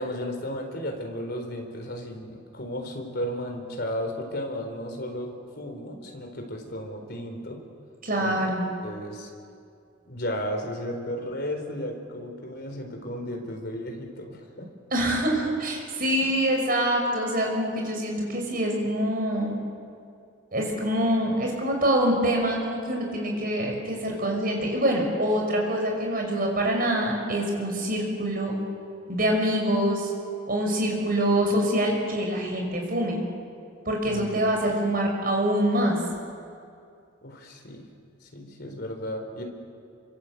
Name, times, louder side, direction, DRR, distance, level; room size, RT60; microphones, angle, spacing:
voice 1, 0.0-7.6 8.2-8.4 8.8-9.3 10.0-14.7 16.2-16.3 34.0-34.5 37.2-37.9 38.2-39.4, equal, 55° left, 3 dB, 4.2 m, -34 dB
voice 2, 8.0-8.6 14.9-19.5 20.5-28.5 29.1-30.1 30.5-33.2 33.9-36.0, right 1 dB, 45° right, 1 dB, 6.2 m, -25 dB
27.0 x 25.0 x 8.0 m, 2.4 s
head